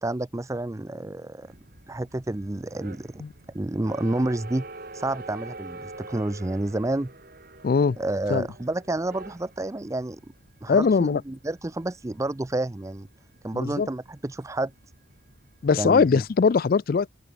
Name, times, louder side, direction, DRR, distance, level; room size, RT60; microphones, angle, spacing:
voice 1, 0.0-1.5 1.9-3.2 3.5-4.7 4.9-7.1 8.0-10.2 10.6-13.1 13.4-14.7 15.8-16.2, right 2 dB, 15° right, 0.4 m, -29 dB
sound 1, 1.4-16.5, right 2 dB, 50° right, 2.9 m, -46 dB
voice 2, 7.6-8.0 8.3-8.5 10.7-11.2 13.5-13.9 15.6-17.1, left 5 dB, 50° left, 0.3 m, -21 dB
open air
head